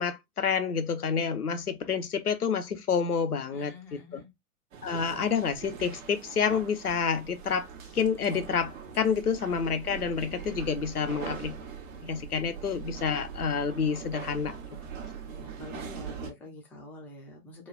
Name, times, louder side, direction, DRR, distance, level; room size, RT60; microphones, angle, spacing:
voice 1, 0.0-3.7 4.1-4.2 4.8-7.7 7.9-11.6 12.0-14.5, left 6 dB, 90° left, 0.7 m, -28 dB
voice 2, 3.5-4.3 15.3-17.7, left 2 dB, 5° left, 0.4 m, -46 dB
sound 1, 4.7-16.3, right 7 dB, 60° right, 1.0 m, -42 dB
3.1 x 2.2 x 2.3 m
figure-of-eight pair, 105°, 44 cm